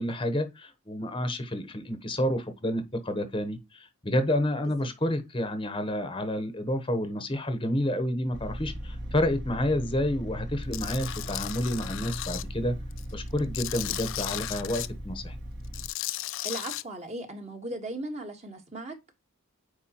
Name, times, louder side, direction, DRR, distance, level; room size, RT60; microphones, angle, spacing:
voice 1, 0.0-12.7 13.1-15.4, left 1 dB, 20° left, 1.0 m, -29 dB
sound 1, 8.3-15.9, equal, 50° right, 1.5 m, -38 dB
Tools, 10.7-12.4 12.9-14.9 15.6-16.8, left 15 dB, 55° left, 0.4 m, -35 dB
voice 2, 16.4-19.1, right 1 dB, 30° right, 1.4 m, -37 dB
9.6 x 4.7 x 2.9 m
head